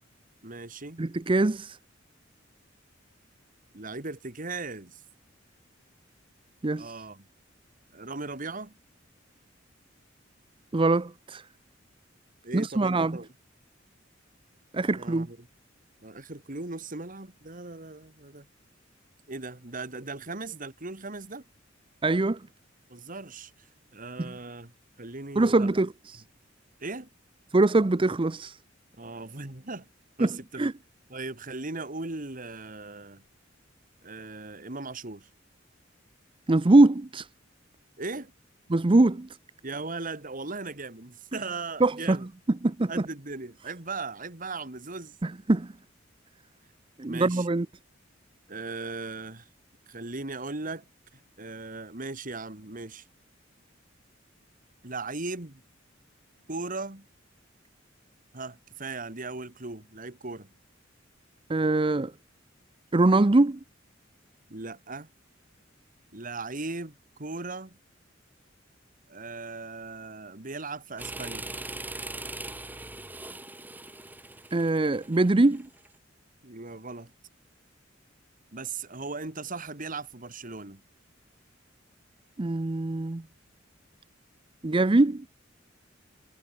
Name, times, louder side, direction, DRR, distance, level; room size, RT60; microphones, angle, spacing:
voice 1, 0.4-1.0 3.7-5.0 6.8-7.3 7.9-8.7 12.4-13.3 14.8-15.5 16.0-18.5 19.3-21.4 22.9-23.7 23.9-24.7 25.0-25.7 26.8-27.1 29.0-29.9 30.2-30.7 31.1-33.2 34.0-35.3 38.0-38.3 39.6-42.3 42.9-45.2 47.0-47.5 48.5-49.5 49.9-50.8 51.1-53.1 54.8-55.6 56.5-57.0 58.3-60.5 64.5-65.1 66.1-67.8 69.1-71.5 76.4-77.1 78.5-80.8, right 3 dB, 45° right, 2.4 m, -38 dB
voice 2, 1.0-1.8 6.6-6.9 10.7-11.4 12.5-13.2 14.7-15.3 22.0-22.4 24.2-24.3 25.4-26.2 27.5-28.6 30.2-30.7 36.5-37.3 38.7-39.3 41.8-42.2 42.6-42.9 45.2-45.7 47.0-47.7 61.5-62.1 62.9-63.6 74.5-75.7 82.4-83.2 84.6-85.2, right 2 dB, 25° right, 0.6 m, -23 dB
sound 1, 71.0-75.9, right 2 dB, 10° right, 2.0 m, -40 dB
head